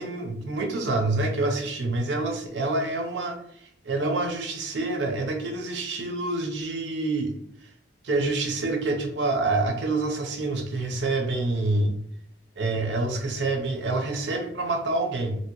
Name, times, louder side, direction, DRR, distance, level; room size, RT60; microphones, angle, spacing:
voice 1, 0.0-7.3 8.0-11.9 12.6-15.4, right 2 dB, 90° right, 3 dB, 0.7 m, -27 dB
2.8 x 2.8 x 2.9 m, 0.71 s
head